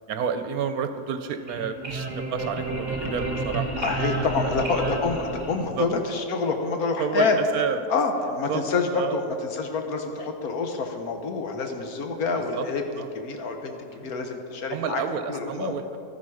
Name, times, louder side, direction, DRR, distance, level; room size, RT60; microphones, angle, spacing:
voice 1, 0.1-4.1 4.4-5.0 5.6-5.9 7.0-7.8 8.3-8.7 8.9-9.2 10.5-10.6 12.5-12.7 13.0-13.1 13.9-14.1 14.7-16.0, right 7 dB, 70° right, 9 dB, 1.1 m, -30 dB
sound 1, 1.3-6.0, right 2 dB, 30° right, 1.4 m, -31 dB
voice 2, 3.8-7.4 7.9-9.2 9.5-12.8 13.1-15.0 15.3-15.8, left 4 dB, 70° left, 4 dB, 1.5 m, -27 dB
13.0 x 10.5 x 4.9 m, 2.5 s
omnidirectional pair, 1.7 m